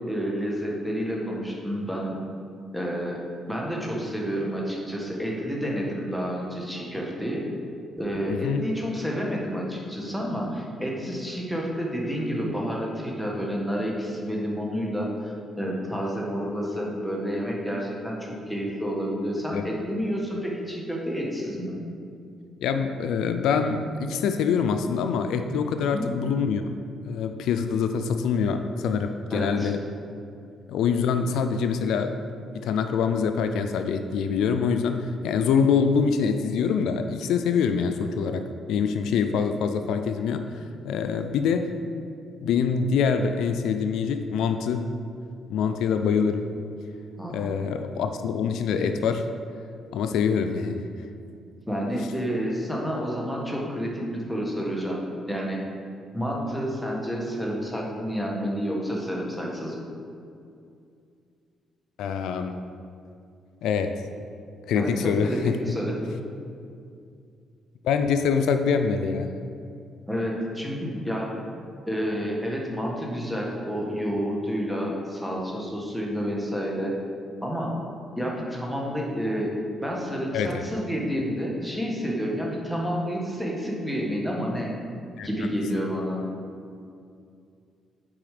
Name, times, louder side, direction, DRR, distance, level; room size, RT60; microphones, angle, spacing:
voice 1, 0.1-2.2 2.7-3.2 3.5-7.4 8.0-21.8 25.8-26.1 29.3-29.7 47.2-47.5 51.7-55.0 55.3-55.6 56.1-59.7 64.7-66.1 70.1-71.3 71.8-77.0 77.4-77.8 78.2-79.5 79.8-84.7 85.2-86.2, equal, ahead, -3 dB, 1.6 m, -29 dB
voice 2, 8.3-8.6 19.5-19.7 22.6-26.6 27.1-29.8 30.7-32.2 32.6-41.7 42.4-44.9 45.5-46.5 47.3-49.3 49.9-50.9 62.0-62.7 63.6-64.0 64.7-65.6 67.8-69.3 80.3-80.6 85.2-85.3, left 6 dB, 85° left, 7 dB, 0.4 m, -25 dB
7.2 x 4.9 x 5.0 m, 2.4 s
cardioid pair, 90°, 0 cm